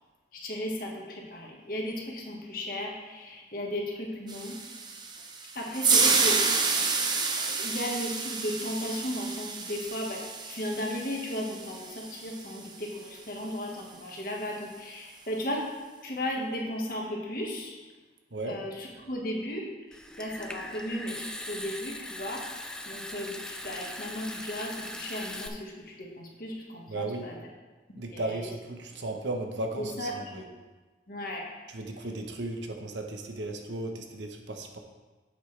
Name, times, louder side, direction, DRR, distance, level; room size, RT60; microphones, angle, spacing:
voice 1, 0.3-4.6 5.5-6.9 7.4-15.7 16.0-17.8 18.4-19.6 19.9-27.3 28.1-28.4 30.0-30.4 31.1-31.4, left 1 dB, 50° left, -1 dB, 1.5 m, -35 dB
sound 1, 4.3-12.6, right 4 dB, 25° right, 0.7 m, -29 dB
Water tap faucet / Sink (filling or washing) / Trickle dribble, 19.9-25.5, left 1 dB, 5° left, 0.4 m, -40 dB
voice 2, 26.9-27.3 28.0-30.4 31.7-34.8, right 2 dB, 85° right, 4 dB, 1.0 m, -35 dB
8.6 x 8.0 x 3.3 m, 1.3 s
head